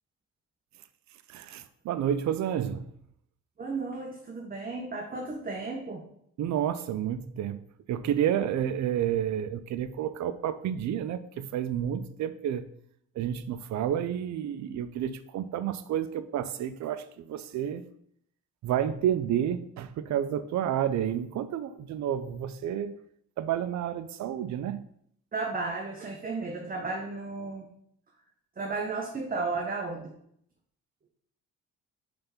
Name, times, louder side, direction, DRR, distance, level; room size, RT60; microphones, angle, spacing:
voice 1, 1.3-2.9 6.4-12.7 13.2-17.8 18.6-23.0 23.4-24.9, right 10 dB, 65° right, 0.6 m, -30 dB
voice 2, 3.6-6.0 25.3-27.7 28.6-30.1, right 3 dB, 30° right, 0.9 m, -34 dB
5.3 x 3.5 x 5.7 m
cardioid pair, 90°, 30 cm